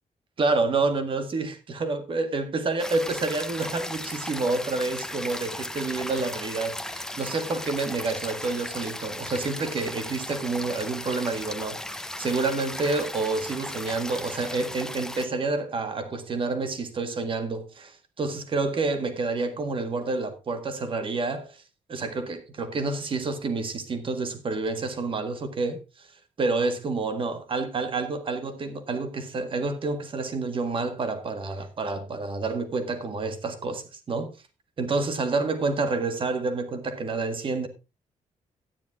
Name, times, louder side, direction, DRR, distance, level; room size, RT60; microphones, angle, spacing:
voice 1, 0.4-21.6 21.9-26.1 26.4-34.3 34.8-37.7, right 3 dB, 40° right, 1.7 m, -28 dB
sound 1, 2.8-15.3, left 1 dB, 5° left, 0.6 m, -36 dB
12.0 x 9.3 x 3.6 m
wide cardioid pair, 160°, 13 cm